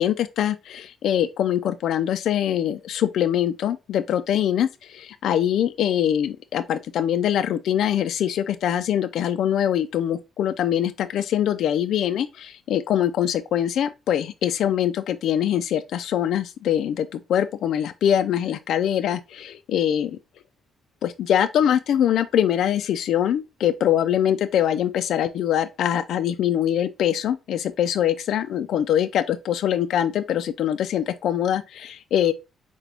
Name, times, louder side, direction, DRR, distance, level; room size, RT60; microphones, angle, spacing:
voice 1, 0.0-20.2 21.0-32.3, left 10 dB, 75° left, 0.3 m, -23 dB
5.9 x 2.2 x 2.8 m
cardioid pair, 90°, 0 cm